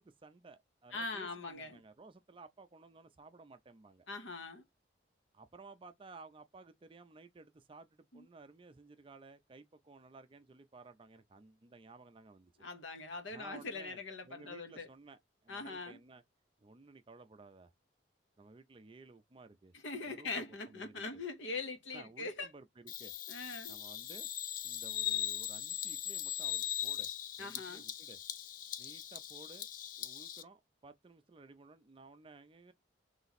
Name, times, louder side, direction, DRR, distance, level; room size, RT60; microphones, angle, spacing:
voice 1, 0.0-4.1 5.3-12.5 13.3-16.2 16.6-17.7 18.4-19.7 20.1-21.2 21.9-23.1 23.7-24.3 24.6-27.1 27.4-28.2 28.8-29.7 30.0-32.7, right 3 dB, 25° right, 0.4 m, -56 dB
voice 2, 0.9-1.8 4.1-4.6 8.1-8.2 12.6-14.9 15.5-16.0 19.7-22.5 23.3-23.8 27.4-27.8, left 3 dB, 75° left, 1.0 m, -42 dB
Bird vocalization bird call bird song, 22.9-30.4, left 12 dB, 45° left, 0.3 m, -40 dB
3.3 x 2.9 x 4.0 m
head